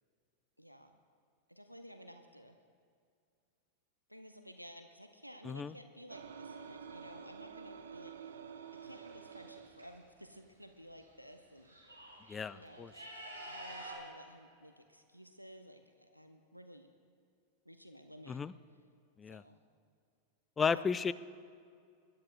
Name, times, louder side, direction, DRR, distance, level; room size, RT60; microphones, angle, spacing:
voice 1, 0.6-1.0 1.5-2.6 4.1-8.1 8.8-12.1 12.5-12.9 13.5-16.9 17.6-18.4 19.3-19.6 20.6-20.9, equal, 90° left, 7 dB, 0.6 m, -54 dB
sound 1, 6.1-9.8, right 6 dB, 65° right, 0.7 m, -49 dB
sound 2, 8.7-9.8 11.0-11.1 11.4-14.0, right 1 dB, 90° right, 3.0 m, -49 dB
voice 2, 12.3-12.9 18.3-18.5 19.2-19.4 20.6-21.1, left 6 dB, 20° left, 17 dB, 0.3 m, -34 dB
24.0 x 11.5 x 2.5 m, 2.3 s
figure-of-eight pair, 90°, 0 cm